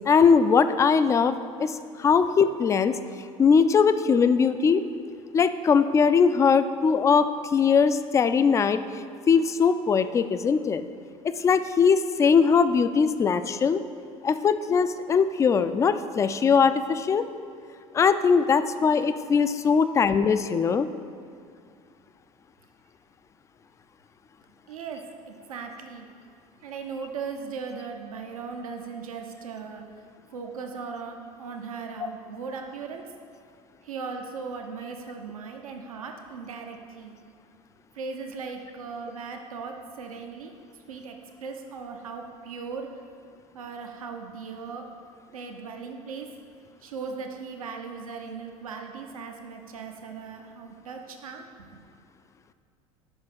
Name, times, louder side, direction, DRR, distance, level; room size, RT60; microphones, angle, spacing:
voice 1, 0.1-1.7 2.0-3.0 3.4-4.8 5.3-7.3 7.5-8.8 9.3-10.8 11.2-13.8 14.2-17.3 17.9-20.9, left 6 dB, 15° left, 11 dB, 0.3 m, -21 dB
voice 2, 24.7-25.0 25.3-26.1 26.6-29.8 30.3-33.0 33.8-37.2 38.0-40.5 40.9-42.9 43.5-44.9 45.3-46.3 46.8-51.4 51.7-51.8, right 5 dB, 75° right, 4 dB, 0.7 m, -38 dB
6.2 x 5.4 x 6.5 m, 2.4 s
figure-of-eight pair, 70°, 18 cm